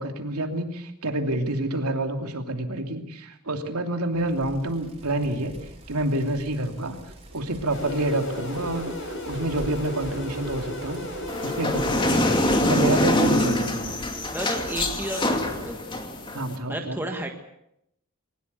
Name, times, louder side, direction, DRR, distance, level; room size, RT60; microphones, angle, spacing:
voice 1, 0.0-5.5 5.9-7.0 7.3-11.0 11.4-12.3 12.6-13.9 16.3-17.0, right 1 dB, 85° right, 5 dB, 3.0 m, -28 dB
Bicycle, 4.1-15.8, right 1 dB, 25° right, 4.8 m, -44 dB
sound 1, 7.7-12.8, equal, 60° left, 7.4 m, -34 dB
sound 2, 11.3-16.5, left 1 dB, 20° left, 2.4 m, -24 dB
voice 2, 14.3-15.8 16.7-17.3, right 1 dB, 10° right, 3 dB, 1.7 m, -32 dB
22.0 x 20.0 x 8.3 m, 0.79 s
head